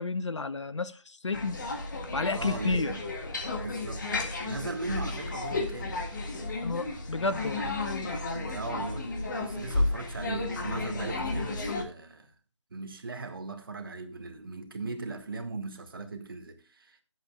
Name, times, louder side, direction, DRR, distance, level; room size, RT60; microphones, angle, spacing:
voice 1, 0.0-1.6 2.1-2.9 6.6-7.8, left 3 dB, 70° left, 1.0 m, -31 dB
sound 1, 1.3-11.8, left 2 dB, 40° left, 1.8 m, -33 dB
voice 2, 2.1-3.1 3.6-4.1 4.4-6.0 8.5-12.3 12.7-17.0, right 3 dB, 45° right, 1.7 m, -38 dB
21.5 x 8.1 x 2.3 m
figure-of-eight pair, 170°, 16 cm